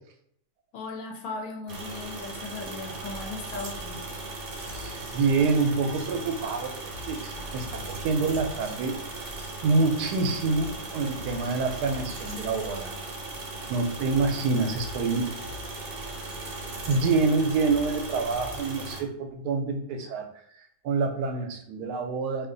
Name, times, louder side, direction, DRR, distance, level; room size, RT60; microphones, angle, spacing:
voice 1, 0.7-4.3, left 3 dB, 70° left, 1 dB, 1.1 m, -37 dB
sound 1, 1.7-19.0, right 2 dB, 50° right, 0.8 m, -38 dB
sound 2, 4.7-5.0 5.3-5.9 6.2-6.5 6.8-8.6 8.9-9.5 9.8-10.1 10.4-12.2 12.5-13.1 13.4-13.7 14.0-15.8 16.1-16.7 17.0-17.2 17.6-18.8, left 7 dB, 45° left, 1.1 m, -45 dB
voice 2, 4.7-6.7 7.0-9.0 9.6-12.9 13.7-15.3 16.9-20.3 20.8-22.5, right 4 dB, 80° right, 5 dB, 1.1 m, -26 dB
2.8 x 2.4 x 3.7 m, 0.68 s
omnidirectional pair, 1.7 m